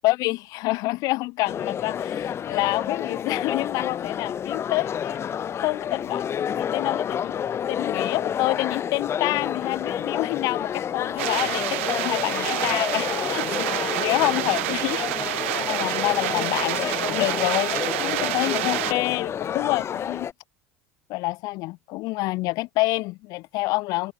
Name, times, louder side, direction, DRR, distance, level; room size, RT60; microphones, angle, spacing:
voice 1, 0.0-5.2 5.6-7.3 7.7-20.3 21.1-24.1, left 22 dB, 60° left, 1.9 m, -27 dB
sound 1, 1.5-20.3, left 8 dB, 40° left, 1.6 m, -29 dB
sound 2, 11.2-18.9, right 20 dB, 70° right, 0.9 m, -28 dB
hypercardioid pair, 70°, 7 cm